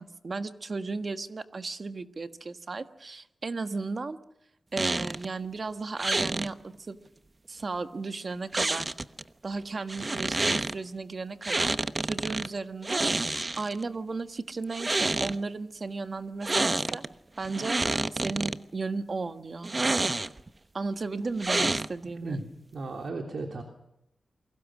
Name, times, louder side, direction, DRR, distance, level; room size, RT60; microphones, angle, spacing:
voice 1, 0.0-4.2 4.7-7.0 7.5-8.9 9.4-11.7 12.0-17.1 17.4-19.7 20.7-22.4, right 3 dB, 45° right, 9 dB, 1.4 m, -35 dB
sound 1, 4.8-5.3 6.0-6.5 8.5-9.2 9.9-10.7 11.4-12.5 12.8-13.8 14.6-15.4 16.4-17.1 17.4-18.6 19.6-20.5 21.4-22.1, right 2 dB, 30° right, 0.9 m, -28 dB
voice 2, 22.2-23.6, right 3 dB, 70° right, 2 dB, 3.2 m, -35 dB
29.0 x 23.0 x 6.3 m, 0.80 s
wide cardioid pair, 85°, 0 cm